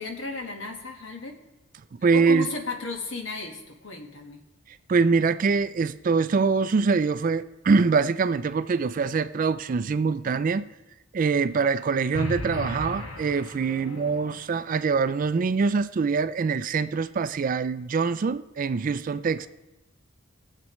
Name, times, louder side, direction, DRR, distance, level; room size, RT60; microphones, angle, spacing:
voice 1, 0.0-1.4 2.1-4.4 13.7-14.4, left 3 dB, 65° left, 3 dB, 1.5 m, -35 dB
voice 2, 2.0-2.5 4.9-10.7 11.1-19.5, right 4 dB, 40° right, 13 dB, 0.3 m, -24 dB
sound 1, 12.1-14.2, left 1 dB, 85° left, 1.1 m, -34 dB
20.5 x 7.5 x 3.1 m, 1.0 s
head